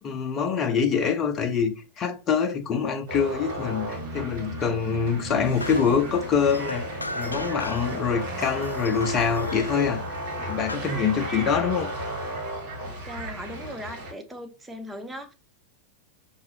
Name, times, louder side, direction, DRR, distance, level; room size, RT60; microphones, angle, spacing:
voice 1, 0.0-10.0 10.4-12.0, left 6 dB, 30° left, 0.8 m, -25 dB
sound 1, 3.1-14.1, right 1 dB, 55° right, 2.0 m, -34 dB
sound 2, 5.6-8.0 8.4-10.8, left 3 dB, 80° left, 0.3 m, -36 dB
voice 2, 12.8-15.3, equal, 10° right, 0.7 m, -39 dB
5.9 x 2.7 x 3.1 m
figure-of-eight pair, 90°, 0 cm